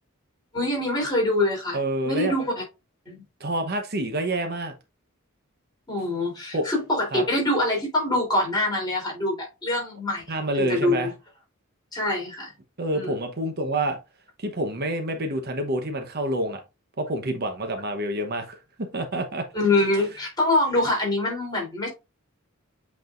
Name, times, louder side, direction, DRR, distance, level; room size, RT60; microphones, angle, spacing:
voice 1, 0.5-2.6 3.0-3.2 5.9-10.2 10.6-11.1 11.9-12.5 12.9-13.1 19.5-21.9, left 1 dB, 20° left, 3.4 m, -25 dB
voice 2, 1.7-2.4 3.4-4.7 6.5-6.7 7.1-7.2 10.3-11.1 12.8-14.0 14.4-16.6 17.0-19.5, right 1 dB, 50° right, 1.0 m, -27 dB
8.1 x 4.7 x 2.5 m
head